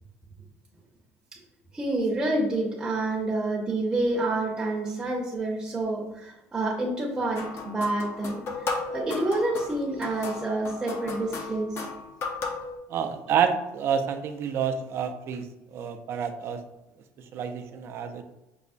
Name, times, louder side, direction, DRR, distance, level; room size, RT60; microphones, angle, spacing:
voice 1, 1.7-11.7, right 2 dB, 15° right, -4 dB, 0.7 m, -28 dB
sound 1, 7.4-12.8, left 3 dB, 45° left, 0.6 m, -35 dB
voice 2, 12.9-15.5 15.7-16.6 17.3-18.2, right 7 dB, 45° right, 7 dB, 0.4 m, -28 dB
5.3 x 2.0 x 2.5 m, 0.96 s
cardioid pair, 125°, 6 cm